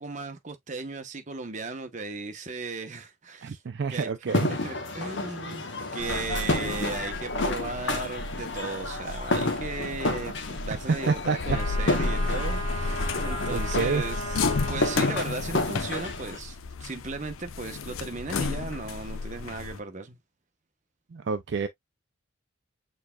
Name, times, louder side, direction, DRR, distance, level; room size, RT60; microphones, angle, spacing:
voice 1, 0.0-3.6 3.9-4.1 4.5-5.7 5.9-20.2, right 3 dB, 35° right, 0.9 m, -36 dB
voice 2, 3.4-4.5 11.1-11.4 13.5-14.0 21.1-21.7, right 5 dB, 55° right, 0.4 m, -28 dB
sound 1, 4.3-16.4, left 2 dB, 60° left, 1.0 m, -31 dB
sound 2, 6.0-19.8, left 3 dB, 85° left, 0.6 m, -33 dB
sound 3, 11.5-15.3, equal, 45° left, 1.5 m, -36 dB
6.5 x 3.4 x 2.2 m
head